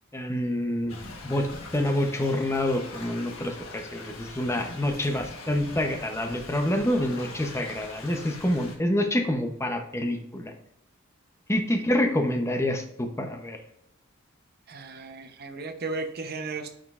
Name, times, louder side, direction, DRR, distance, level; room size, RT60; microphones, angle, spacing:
voice 1, 0.1-1.0 1.2-1.5 1.7-10.5 11.5-13.6, left 1 dB, 15° left, 4 dB, 0.7 m, -27 dB
Thunder / Rain, 0.9-8.8, left 3 dB, 80° left, 1.3 m, -42 dB
voice 2, 14.7-16.7, right 3 dB, 50° right, 7 dB, 0.7 m, -35 dB
9.4 x 5.1 x 2.4 m, 0.80 s
head